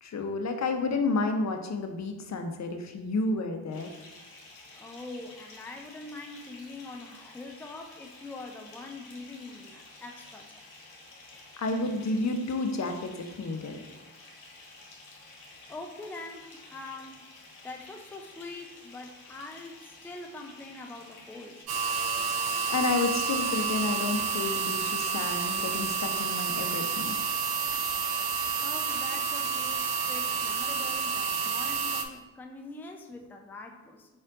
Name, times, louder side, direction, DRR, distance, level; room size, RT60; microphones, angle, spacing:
voice 1, 0.0-3.9 11.6-13.7 22.7-27.2, left 3 dB, 35° left, 5 dB, 0.8 m, -30 dB
Bathtub (filling or washing) / Fill (with liquid), 3.7-21.6, left 2 dB, 55° left, 1.3 m, -51 dB
voice 2, 4.8-10.6 15.7-17.3 17.6-21.6 28.6-34.1, left 2 dB, 5° left, 4 dB, 0.5 m, -43 dB
sound 1, 21.7-32.0, right 5 dB, 55° right, 0.6 m, -29 dB
4.7 x 4.3 x 2.5 m, 1.1 s
hypercardioid pair, 45°, 45 cm